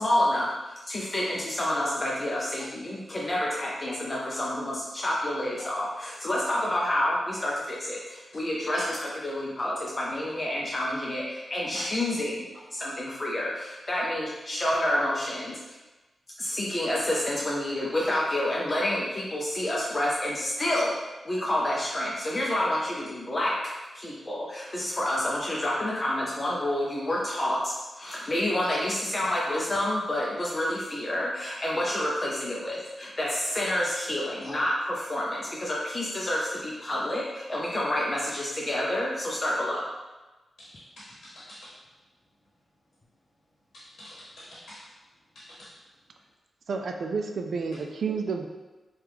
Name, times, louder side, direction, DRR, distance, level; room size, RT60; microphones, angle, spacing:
voice 1, 0.0-15.6 16.4-21.0 21.2-39.9, left 1 dB, 35° left, -4 dB, 0.5 m, -29 dB
voice 2, 41.0-41.6 43.7-44.8 45.3-45.7, left 1 dB, 80° left, -9 dB, 1.0 m, -47 dB
voice 3, 46.7-48.5, right 5 dB, 70° right, 4 dB, 0.3 m, -30 dB
2.9 x 2.3 x 3.4 m, 1.1 s
cardioid pair, 70°, 0 cm